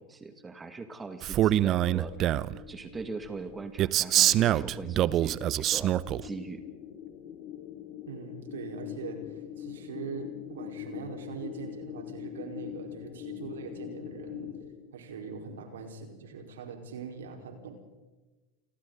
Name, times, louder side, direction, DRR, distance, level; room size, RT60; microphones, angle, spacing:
voice 1, 0.0-2.3 2.7-5.9 6.2-6.6, right 4 dB, 20° right, 8 dB, 2.1 m, -41 dB
Male speech man speaking, 1.2-2.6 3.8-6.2, right 13 dB, 40° right, 0.7 m, -25 dB
sound 1, 1.8-14.7, left 12 dB, 50° left, 6.0 m, -43 dB
voice 2, 8.1-14.5 14.9-17.7, right 5 dB, 75° right, 3 dB, 4.7 m, -42 dB
29.5 x 24.5 x 4.1 m, 1.2 s
hypercardioid pair, 90°, 0 cm